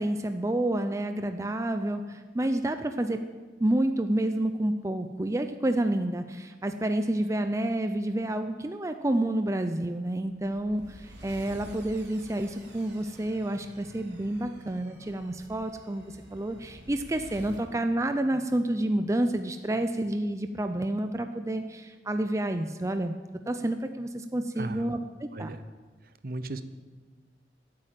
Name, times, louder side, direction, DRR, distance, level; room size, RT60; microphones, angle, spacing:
voice 1, 0.0-3.2 3.6-23.2 23.5-25.0 25.4-25.5, right 1 dB, 15° right, 7 dB, 0.5 m, -29 dB
sound 1, 10.3-17.7, equal, 80° right, 3.6 m, -49 dB
voice 2, 24.6-24.9 25.3-25.6 26.0-26.6, right 2 dB, 55° right, 11 dB, 0.8 m, -36 dB
14.0 x 8.6 x 7.5 m, 1.4 s
head